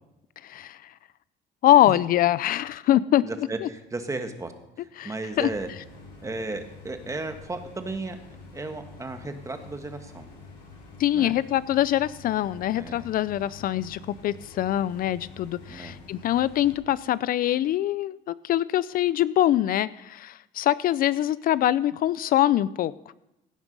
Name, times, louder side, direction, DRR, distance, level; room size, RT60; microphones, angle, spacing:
voice 1, 0.4-0.9 1.6-3.7 5.0-5.5 11.0-23.1, left 12 dB, 60° left, 18 dB, 0.4 m, -24 dB
voice 2, 3.2-4.5 4.8-5.7 6.2-8.2 8.5-10.3 11.1-11.3 12.7-13.1 15.7-15.9, right 2 dB, 20° right, 7 dB, 1.5 m, -34 dB
sound 1, 5.3-16.8, left 4 dB, 85° left, 4.6 m, -47 dB
17.0 x 7.1 x 5.4 m, 0.87 s
cardioid pair, 110°, 17 cm